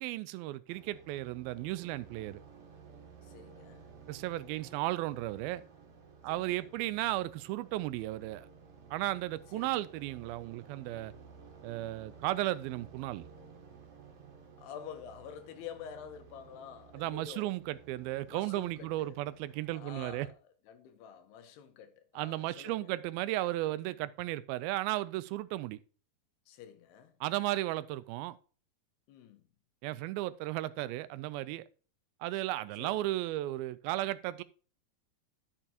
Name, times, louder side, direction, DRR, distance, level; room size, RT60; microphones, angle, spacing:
voice 1, 0.0-2.4 4.1-5.6 6.2-8.5 8.9-11.1 11.6-13.2 16.9-20.3 22.2-25.8 27.2-28.4 29.8-31.6 32.2-34.4, right 16 dB, 80° right, 2.2 m, -35 dB
sound 1, 0.7-20.3, right 5 dB, 50° right, 2.1 m, -55 dB
voice 2, 3.2-3.9 6.3-6.7 9.5-9.9 14.6-17.5 18.3-19.2 19.7-20.3 20.6-22.9 26.5-27.1 29.1-29.4 32.8-33.1, left 8 dB, 80° left, 3.1 m, -48 dB
12.0 x 6.8 x 2.9 m
omnidirectional pair, 4.7 m